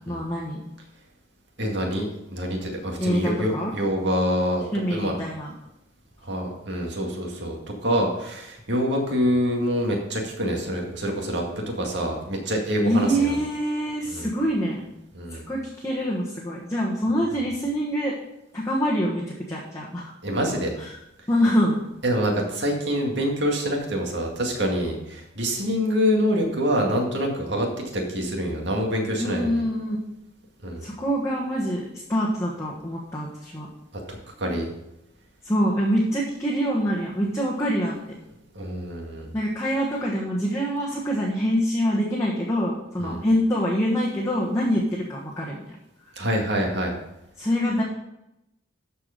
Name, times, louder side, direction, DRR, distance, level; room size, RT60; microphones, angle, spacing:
voice 1, 0.1-0.6 3.0-3.7 4.7-5.5 12.8-14.8 15.3-18.1 18.5-20.1 20.8-20.9 21.3-21.8 29.2-30.0 30.8-33.7 35.4-38.0 39.3-45.6 47.4-47.8, equal, 15° left, -5 dB, 1.3 m, -25 dB
voice 2, 1.6-4.6 4.9-5.2 6.2-13.4 14.1-14.3 15.1-15.4 20.2-20.8 22.0-29.6 30.6-30.9 34.1-34.7 38.5-39.3 43.0-43.2 46.2-46.9, equal, 60° right, 1 dB, 2.1 m, -26 dB
13.0 x 4.8 x 5.2 m, 0.87 s
head